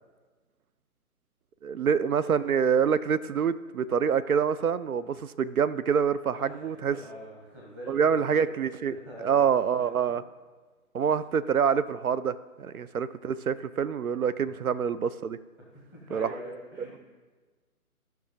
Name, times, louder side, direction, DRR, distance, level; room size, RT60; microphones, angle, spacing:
voice 1, 1.6-7.0 7.9-10.2 10.9-15.4 16.1-16.3, right 7 dB, 70° right, 15 dB, 0.6 m, -26 dB
voice 2, 6.4-8.3 8.9-9.9 11.0-11.1 12.6-12.7 14.4-14.6 15.6-17.0, equal, 5° right, -4 dB, 0.8 m, -45 dB
15.0 x 5.8 x 3.6 m, 1.4 s
figure-of-eight pair, 145°, 44 cm